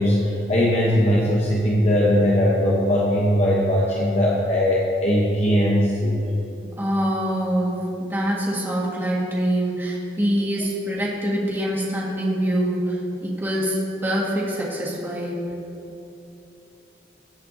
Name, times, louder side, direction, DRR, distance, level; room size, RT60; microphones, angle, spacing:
voice 1, 0.0-6.1, equal, 35° left, -4 dB, 1.0 m, -20 dB
voice 2, 6.6-7.8 8.1-15.4, equal, 10° right, -5 dB, 1.7 m, -24 dB
19.5 x 8.2 x 2.8 m, 2.9 s
head